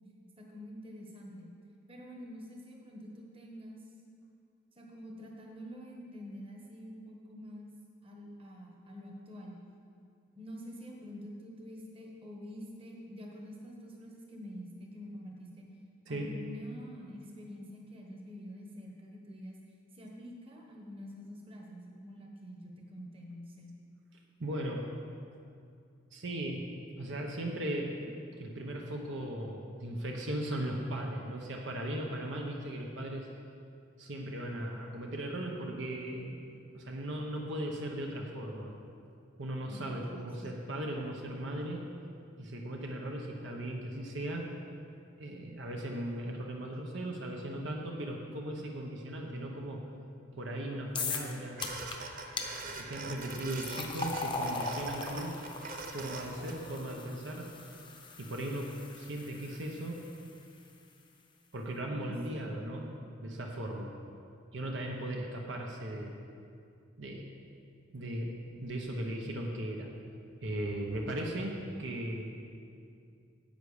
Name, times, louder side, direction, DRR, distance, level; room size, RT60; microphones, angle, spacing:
voice 1, 0.4-1.5 1.9-3.8 4.7-7.7 8.0-9.6 10.3-15.7 16.1-19.6 19.9-23.7 39.7-40.5 61.9-62.5, equal, 30° right, -1 dB, 1.3 m, -47 dB
voice 2, 24.4-24.9 26.1-26.6 27.0-27.9 28.4-33.3 34.0-36.4 36.7-38.7 39.4-41.8 42.4-44.5 45.2-49.8 50.4-51.6 52.8-55.3 55.9-57.5 58.2-60.0 61.5-62.9 63.2-63.9 64.5-66.1 67.0-67.3 67.9-69.9 70.4-72.3, right 1 dB, 70° right, 0 dB, 1.0 m, -37 dB
sound 1, 51.0-51.3 51.6-52.0 52.4-52.5 53.2-60.3, left 4 dB, 25° left, 0.8 m, -40 dB
sound 2, 51.6-56.5, right 3 dB, 45° right, 0.8 m, -43 dB
10.5 x 8.0 x 5.0 m, 2.4 s
head